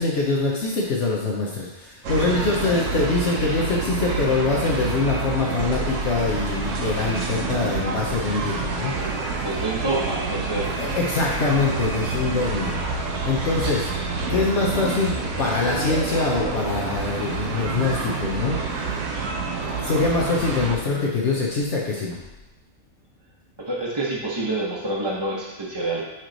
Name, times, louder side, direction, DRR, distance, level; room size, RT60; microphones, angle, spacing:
voice 1, 0.0-9.2 10.8-12.9 13.2-13.9 14.3-18.6 19.8-22.2, left 3 dB, 65° left, -3 dB, 1.1 m, -24 dB
sound 1, 2.0-20.8, right 4 dB, 75° right, 1.2 m, -28 dB
voice 2, 9.4-10.7 23.6-26.0, right 2 dB, 25° right, -6 dB, 0.8 m, -27 dB
8.8 x 3.1 x 3.9 m, 1.0 s
omnidirectional pair, 1.3 m